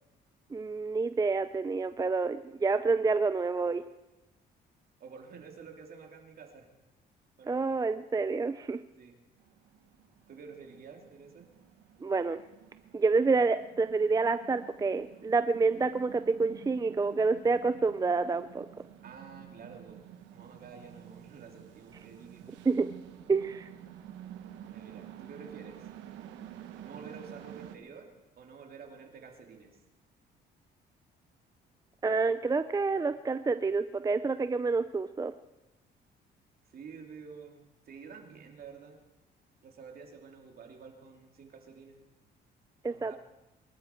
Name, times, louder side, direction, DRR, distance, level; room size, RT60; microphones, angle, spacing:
voice 1, 0.5-3.8 7.5-8.8 12.0-12.4 12.9-18.7 22.6-22.9 23.3-23.7 32.0-35.3 42.8-43.1, right 4 dB, 20° right, 11 dB, 0.5 m, -28 dB
voice 2, 5.0-6.7 7.4-7.7 9.0-9.2 10.3-11.5 19.0-20.0 20.3-22.5 24.7-25.9 26.8-29.8 36.7-39.0 39.6-42.0 42.9-43.2, right 5 dB, 55° right, 3 dB, 2.9 m, -49 dB
sound 1, 9.4-27.8, right 11 dB, 90° right, 1.1 m, -50 dB
23.0 x 12.5 x 4.5 m, 1.0 s
cardioid pair, 90°, 18 cm